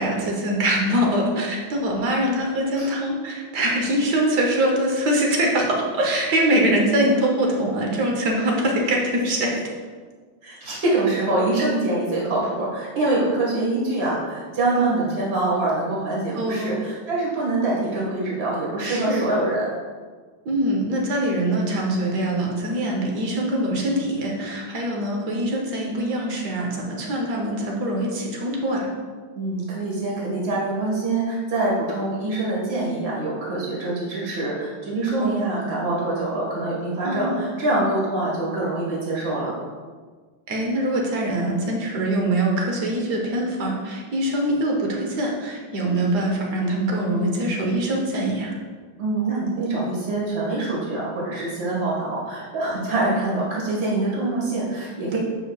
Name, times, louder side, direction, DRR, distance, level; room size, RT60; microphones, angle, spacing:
voice 1, 0.0-9.5 16.3-16.7 18.8-19.3 20.4-28.9 35.2-35.3 37.0-37.5 40.5-48.5 55.1-55.2, right 1 dB, 60° right, 0 dB, 1.5 m, -23 dB
voice 2, 10.4-19.7 29.3-39.5 49.0-55.2, right 2 dB, 35° right, -6 dB, 1.8 m, -24 dB
7.9 x 5.4 x 2.4 m, 1.5 s
omnidirectional pair, 2.2 m